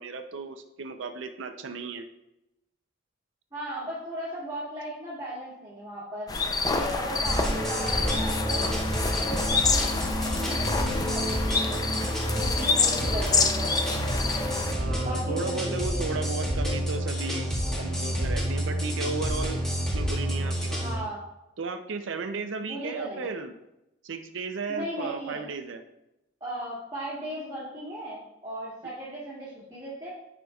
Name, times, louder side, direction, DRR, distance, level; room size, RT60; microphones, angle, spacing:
voice 1, 0.0-2.1 14.7-17.5 17.8-19.6 19.9-21.1 21.6-23.6 24.0-25.8, right 4 dB, 80° right, 7 dB, 0.5 m, -35 dB
voice 2, 3.5-8.7 9.1-11.8 12.4-13.9 15.0-16.0 20.8-21.2 22.6-23.3 24.7-25.4 26.4-30.1, equal, 20° right, -11 dB, 2.1 m, -37 dB
sound 1, 6.3-14.7, left 4 dB, 20° left, 0.4 m, -27 dB
sound 2, 7.2-20.9, equal, 5° left, 1.5 m, -29 dB
sound 3, 8.0-18.2, left 4 dB, 70° left, 1.4 m, -42 dB
9.2 x 5.0 x 2.3 m, 0.90 s
head